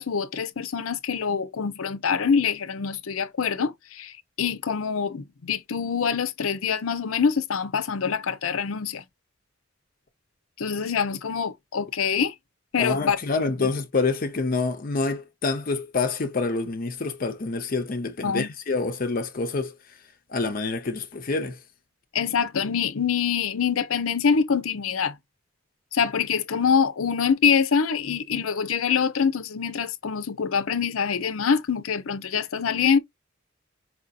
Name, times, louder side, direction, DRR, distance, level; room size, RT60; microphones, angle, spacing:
voice 1, 0.0-9.0 10.6-12.3 12.7-13.2 13.6-13.7 18.2-18.5 22.1-25.2 25.9-33.0, left 6 dB, 90° left, 0.6 m, -25 dB
voice 2, 12.8-19.7 20.3-21.6, left 3 dB, 45° left, 0.6 m, -27 dB
4.8 x 2.6 x 2.4 m
head